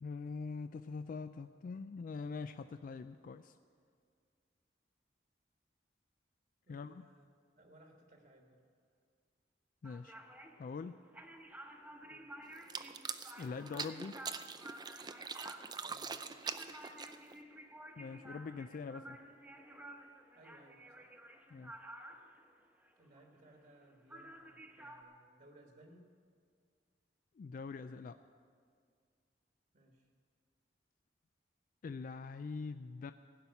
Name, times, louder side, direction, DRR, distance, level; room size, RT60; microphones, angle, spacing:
voice 1, 0.0-3.6 6.7-7.1 9.8-10.2 10.6-11.0 13.4-14.2 18.0-19.2 21.5-21.8 27.4-28.2 31.8-33.1, left 4 dB, 50° left, 10 dB, 0.3 m, -43 dB
voice 2, 6.7-7.3 7.5-8.7 12.0-12.3 15.8-16.2 20.3-21.1 23.0-26.1 29.7-30.1, right 1 dB, 50° right, 2 dB, 1.4 m, -62 dB
sound 1, 9.8-23.8 24.1-25.0, right 1 dB, 10° right, 0.9 m, -53 dB
sound 2, 12.6-17.4, right 5 dB, 25° right, 0.5 m, -43 dB
16.5 x 5.7 x 9.4 m, 2.1 s
head